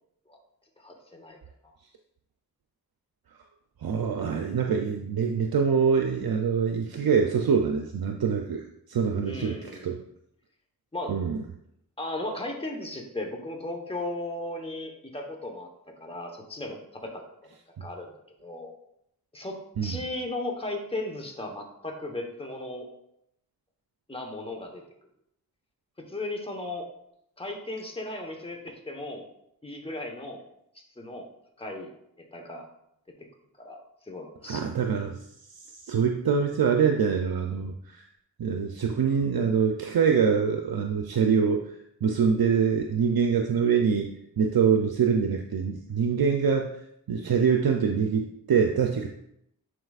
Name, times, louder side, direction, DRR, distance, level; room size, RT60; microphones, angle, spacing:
voice 1, 0.8-1.4 1.6-1.7 9.2-9.9 10.9-11.1 12.0-15.7 16.0-17.2 17.8-18.1 18.4-18.7 19.3-22.9 24.1-24.8 26.1-26.9 27.4-29.2 29.6-30.4 30.7-31.3 31.6-31.9 32.3-32.7 33.6-34.7, left 2 dB, 15° left, 1 dB, 1.1 m, -36 dB
voice 2, 3.8-10.0 11.1-11.4 19.8-20.0 34.4-35.2 35.8-38.0 38.4-46.8 47.1-49.1, right 6 dB, 75° right, 3 dB, 0.6 m, -25 dB
9.8 x 4.7 x 2.4 m, 0.76 s
wide cardioid pair, 60°, 37 cm